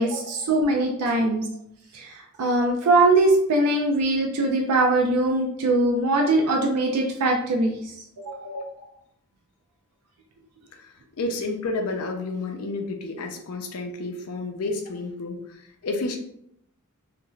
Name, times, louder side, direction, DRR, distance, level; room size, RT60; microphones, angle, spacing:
voice 1, 0.0-1.4 1.9-8.5, right 2 dB, 90° right, 0 dB, 0.4 m, -22 dB
voice 2, 10.7-16.2, left 2 dB, 70° left, 4 dB, 0.5 m, -31 dB
3.0 x 2.5 x 2.3 m, 0.73 s
head